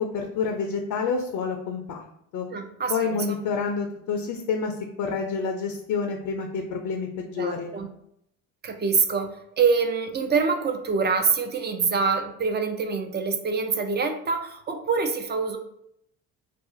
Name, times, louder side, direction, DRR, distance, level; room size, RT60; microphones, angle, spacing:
voice 1, 0.0-2.0 2.3-2.5 2.9-7.8, left 5 dB, 55° left, 3 dB, 0.5 m, -28 dB
voice 2, 2.5-3.4 7.4-7.9 8.6-9.3 9.6-15.6, right 5 dB, 25° right, 6 dB, 0.5 m, -25 dB
2.4 x 2.4 x 3.7 m, 0.75 s
hypercardioid pair, 70°, 40 cm